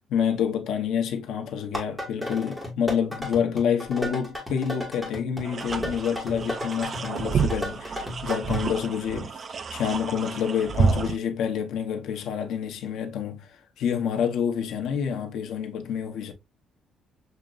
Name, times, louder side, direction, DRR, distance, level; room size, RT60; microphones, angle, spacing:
voice 1, 0.1-9.4 9.7-16.3, left 8 dB, 75° left, 1.0 m, -28 dB
sound 1, 1.6-8.6, left 1 dB, 5° right, 1.8 m, -34 dB
sound 2, 5.4-11.2, right 5 dB, 35° right, 0.4 m, -29 dB
6.6 x 3.0 x 2.5 m
cardioid pair, 155°, 0 cm